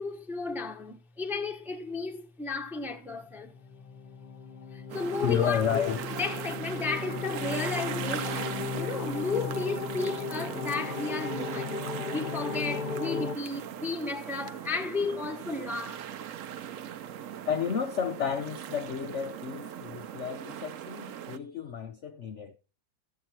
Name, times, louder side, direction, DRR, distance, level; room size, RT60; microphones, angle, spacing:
voice 1, 0.0-3.5 4.7-5.6 6.2-11.8 12.1-16.1, left 3 dB, ahead, 0.5 m, -34 dB
sound 1, 3.3-13.3, left 5 dB, 30° left, 0.7 m, -36 dB
sound 2, 4.9-21.4, right 10 dB, 70° right, 0.7 m, -40 dB
voice 2, 5.2-6.0 17.5-22.6, left 7 dB, 75° left, 0.6 m, -31 dB
14.0 x 7.8 x 4.4 m
omnidirectional pair, 2.1 m